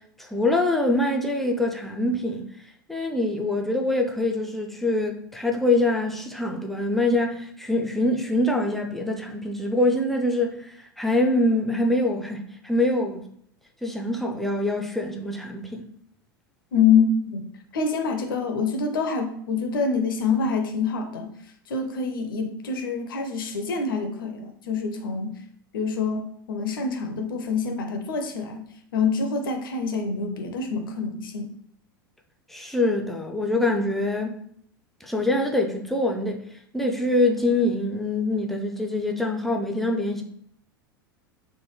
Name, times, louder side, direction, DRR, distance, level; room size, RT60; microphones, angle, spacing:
voice 1, 0.2-2.4 2.9-13.2 13.8-15.9 32.5-34.4 35.0-36.4 36.7-40.2, left 1 dB, ahead, 0.4 m, -24 dB
voice 2, 16.7-21.3 21.7-25.3 25.7-28.6 28.9-31.5, left 5 dB, 70° left, 0.5 m, -26 dB
3.2 x 2.1 x 3.0 m
figure-of-eight pair, 85°, 12 cm